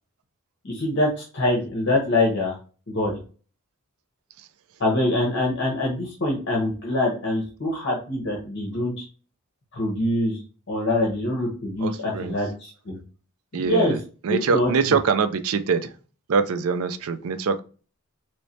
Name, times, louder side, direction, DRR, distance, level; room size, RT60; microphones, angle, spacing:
voice 1, 0.6-2.6 2.9-3.2 4.8-9.0 9.7-10.4 10.7-13.0 13.5-14.0 14.3-15.0, left 1 dB, 55° left, -2 dB, 0.9 m, -24 dB
voice 2, 11.8-12.3 13.5-13.9 14.2-15.9 16.3-17.6, right 5 dB, 75° right, 9 dB, 0.4 m, -23 dB
3.1 x 3.1 x 2.7 m, 0.37 s
head